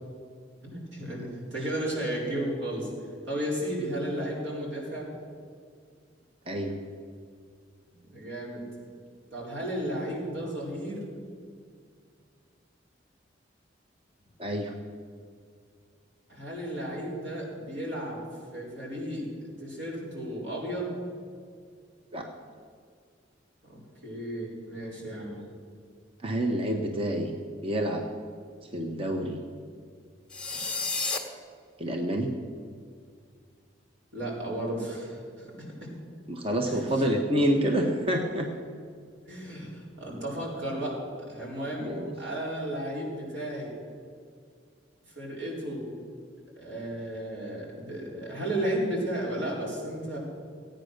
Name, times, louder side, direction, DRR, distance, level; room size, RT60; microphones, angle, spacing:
voice 1, 0.6-2.9 3.3-5.1 7.9-8.6 9.3-11.1 16.3-18.2 18.5-20.9 23.6-25.4 34.1-35.5 35.8-35.9 36.6-36.8 39.3-41.0 41.3-41.9 42.2-43.7 45.1-45.9 46.6-50.2, right 1 dB, 85° right, -4 dB, 4.5 m, -34 dB
voice 2, 14.4-14.7 22.1-22.3 26.2-27.3 27.6-28.0 28.7-29.4 31.8-32.3 36.3-38.5 41.8-42.1, equal, 30° right, 3 dB, 1.0 m, -28 dB
sound 1, 30.3-31.2, left 3 dB, 5° left, 1.5 m, -30 dB
15.5 x 9.2 x 6.5 m, 2.1 s
head